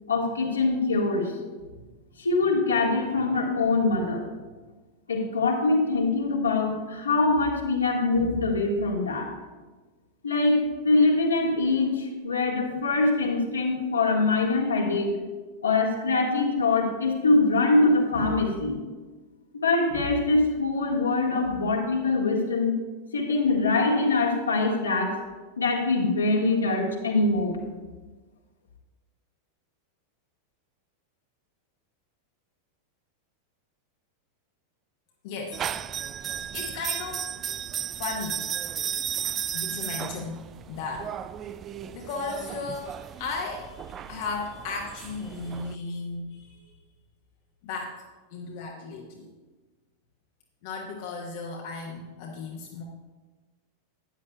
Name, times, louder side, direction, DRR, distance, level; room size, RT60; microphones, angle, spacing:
voice 1, 0.1-1.3 2.2-4.3 5.1-9.3 10.2-15.1 15.6-18.7 19.6-22.7 23.1-25.1 25.6-27.6, left 3 dB, 75° left, 0 dB, 1.6 m, -23 dB
voice 2, 35.2-35.6 36.1-37.3 38.0-38.4 39.5-41.1 41.9-46.7 47.6-48.0 48.3-49.3 50.6-52.8, left 4 dB, 50° left, 0 dB, 1.0 m, -35 dB
sound 1, 35.5-45.7, right 9 dB, 25° right, 0.3 m, -35 dB
13.0 x 9.6 x 2.3 m, 1.3 s
figure-of-eight pair, 90°, 0 cm